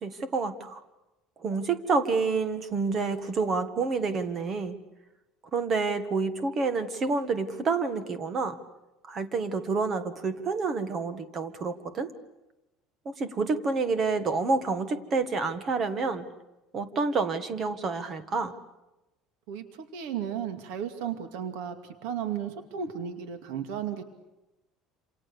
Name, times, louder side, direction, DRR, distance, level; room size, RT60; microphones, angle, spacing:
voice 1, 0.0-0.8 1.4-4.8 5.5-8.6 9.1-12.1 13.0-16.2 16.7-18.5, right 4 dB, 25° right, 11 dB, 1.7 m, -28 dB
voice 2, 19.5-24.0, right 8 dB, 85° right, 8 dB, 2.5 m, -34 dB
28.0 x 27.5 x 7.0 m, 0.99 s
cardioid pair, 175°, 0 cm